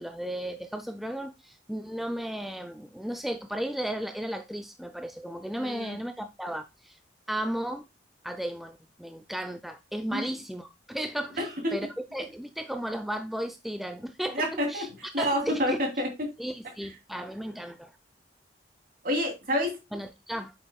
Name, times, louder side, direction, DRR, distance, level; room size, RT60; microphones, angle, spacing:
voice 1, 0.0-7.0 7.3-7.8 8.2-15.8 16.4-17.9 19.9-20.5, right 1 dB, ahead, 0.4 m, -35 dB
voice 2, 5.5-6.0 10.1-10.2 11.4-11.9 14.3-14.9 15.1-16.3 19.0-19.8, equal, 50° right, 3.1 m, -28 dB
8.5 x 6.4 x 2.3 m
head